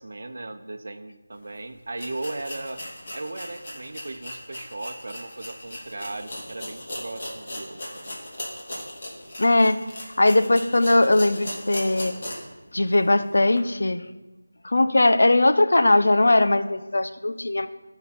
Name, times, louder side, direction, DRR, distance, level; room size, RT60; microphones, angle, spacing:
voice 1, 0.0-2.8 3.1-8.2, right 2 dB, 50° right, 8 dB, 0.8 m, -37 dB
sound 1, 1.4-1.5 1.9-12.6 12.9-13.0 13.5-13.6, left 1 dB, 40° left, 2.5 m, -38 dB
voice 2, 9.4-9.8 10.2-12.1 12.7-14.0 14.6-17.7, left 2 dB, 60° left, 10 dB, 0.7 m, -19 dB
12.5 x 5.9 x 5.7 m, 1.1 s
figure-of-eight pair, 165°, 0 cm